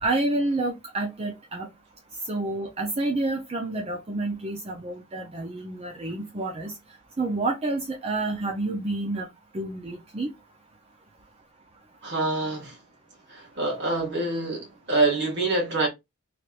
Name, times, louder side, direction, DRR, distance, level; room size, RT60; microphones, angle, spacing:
voice 1, 0.0-1.7 2.3-6.7 7.2-9.3 9.5-10.3, right 2 dB, 25° right, 0.5 m, -29 dB
voice 2, 12.0-12.8 13.3-15.9, right 2 dB, 50° right, 1.7 m, -26 dB
3.3 x 2.9 x 2.4 m
head